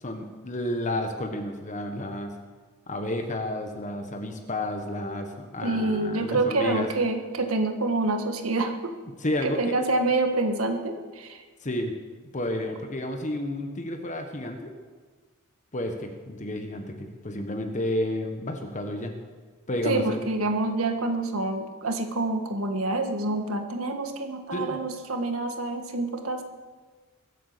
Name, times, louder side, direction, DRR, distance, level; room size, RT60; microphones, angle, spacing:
voice 1, 0.0-2.3 2.9-6.9 9.2-9.7 11.6-11.9 12.3-14.7 15.7-19.1 19.7-20.2 24.5-24.8, left 1 dB, 35° left, 5 dB, 1.3 m, -31 dB
voice 2, 5.6-8.7 9.4-11.4 19.8-26.4, right 2 dB, 80° right, 5 dB, 1.7 m, -27 dB
23.0 x 8.3 x 6.8 m, 1.4 s
head